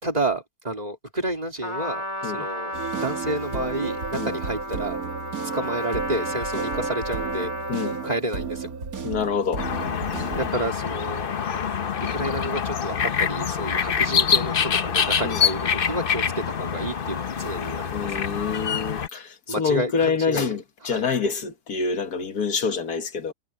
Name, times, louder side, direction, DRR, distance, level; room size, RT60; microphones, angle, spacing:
voice 1, 0.0-5.0 5.4-7.5 8.0-8.7 10.4-11.3 12.1-18.3 19.5-20.5 20.9-21.1, right 1 dB, 25° right, 3.5 m, -30 dB
Trumpet, 1.6-8.2, equal, 20° left, 2.5 m, -33 dB
sound 1, 2.7-10.5, right 5 dB, 65° right, 2.6 m, -32 dB
voice 2, 9.0-9.7 15.2-15.4 17.9-23.3, left 5 dB, 75° left, 1.9 m, -26 dB
sound 2, 9.6-19.1, left 7 dB, 40° left, 0.9 m, -25 dB
omnidirectional pair, 1.7 m